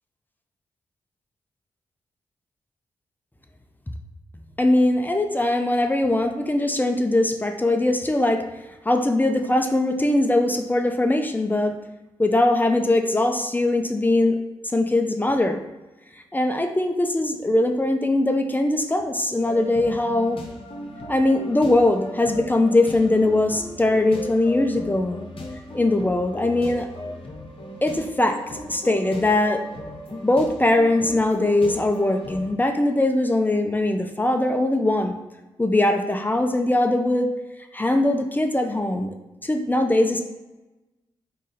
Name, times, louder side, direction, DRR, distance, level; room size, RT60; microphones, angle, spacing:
voice 1, 4.6-8.4 8.8-11.7 12.2-14.4 14.7-15.6 16.3-20.4 21.1-25.2 25.7-26.9 27.8-28.4 28.7-29.6 30.1-35.1 35.6-37.3 37.7-39.1 39.4-40.2, left 2 dB, 15° left, 4 dB, 0.6 m, -21 dB
sound 1, 19.4-32.5, left 1 dB, 60° left, 0.9 m, -37 dB
3.6 x 2.7 x 4.1 m, 1.1 s
supercardioid pair, 40°, 10 cm